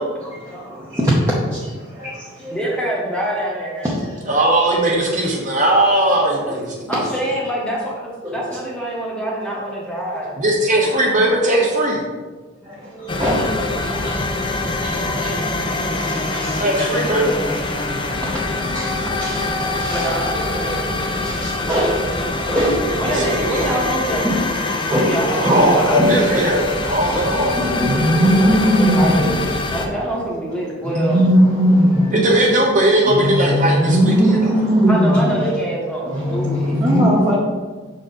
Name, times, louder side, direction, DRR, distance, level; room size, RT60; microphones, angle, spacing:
voice 1, 0.2-2.6 3.8-4.3 6.1-6.7 6.9-7.2 8.2-8.4 11.3-11.4 12.6-17.2 18.2-20.1 21.2-23.8 24.2-26.2 27.0-29.4 29.7-30.3 30.6-32.3 33.0-35.6 36.0-37.4, equal, 15° right, -6 dB, 0.8 m, -21 dB
voice 2, 2.5-3.9 6.9-10.4 17.9-18.0 19.9-21.1 23.0-24.3 24.9-26.3 28.9-29.4 29.7-31.2 34.9-36.7 37.3-37.4, right 1 dB, 5° left, -4 dB, 1.0 m, -25 dB
voice 3, 4.3-6.9 10.4-12.0 16.6-17.3 23.1-23.7 25.4-27.8 32.1-34.1, right 1 dB, 40° right, -2 dB, 1.2 m, -18 dB
sound 1, 13.1-29.9, left 2 dB, 25° left, 0.5 m, -24 dB
6.8 x 4.2 x 3.9 m, 1.3 s
head